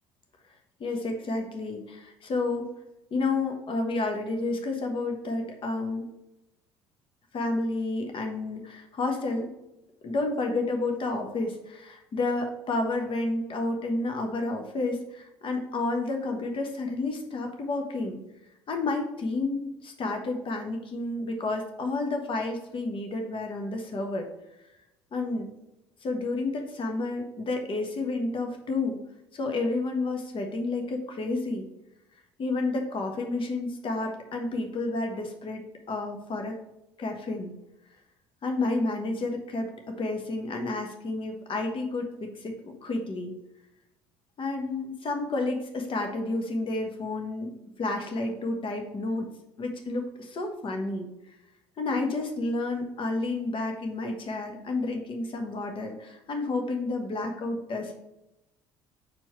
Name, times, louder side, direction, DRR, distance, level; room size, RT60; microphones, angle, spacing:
voice 1, 0.8-2.7 3.1-6.1 7.3-9.5 10.0-18.2 18.7-24.3 25.1-25.5 26.0-29.0 29.3-31.7 32.4-36.6 37.0-37.6 38.4-43.3 44.4-47.5 47.8-49.3 49.6-51.1 51.8-57.9, left 2 dB, 35° left, 3 dB, 1.2 m, -30 dB
5.2 x 4.5 x 4.5 m, 0.90 s
figure-of-eight pair, 55°, 14 cm